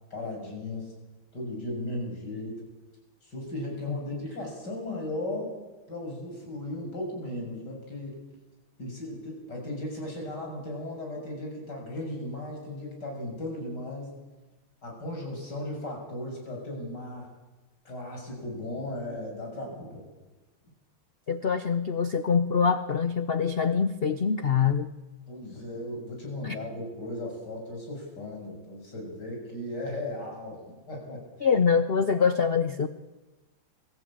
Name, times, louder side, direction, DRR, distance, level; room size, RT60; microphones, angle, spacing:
voice 1, 0.1-0.9 1.3-2.6 3.2-5.5 5.9-8.2 8.8-14.1 14.8-17.3 17.9-20.0 25.3-31.5, left 1 dB, 55° left, 0 dB, 7.1 m, -36 dB
voice 2, 21.3-24.9 26.4-26.5 31.4-32.9, left 6 dB, 75° left, 10 dB, 0.5 m, -24 dB
22.5 x 15.0 x 8.7 m, 1.1 s
omnidirectional pair, 2.2 m